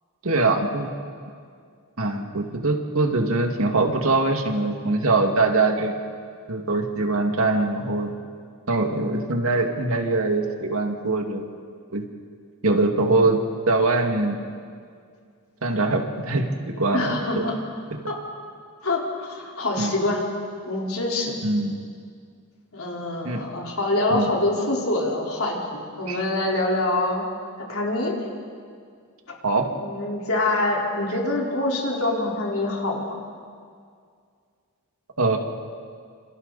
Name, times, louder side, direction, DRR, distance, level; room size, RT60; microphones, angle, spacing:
voice 1, 0.2-0.9 2.0-5.9 6.5-8.1 8.7-11.4 11.9-12.0 12.6-13.4 13.7-14.4 15.6-17.5 17.9-18.0 19.8-19.9 21.4-21.8 23.2-23.4 24.1-24.3 26.1-26.2 29.4-29.7 35.2-35.4, right 2 dB, 70° right, 3 dB, 2.2 m, -22 dB
voice 2, 16.9-17.6 18.8-20.2 20.7-21.3 22.7-27.2 27.7-28.1 29.8-33.1, left 2 dB, 65° left, -2 dB, 4.4 m, -25 dB
28.5 x 27.5 x 4.2 m, 2.2 s
head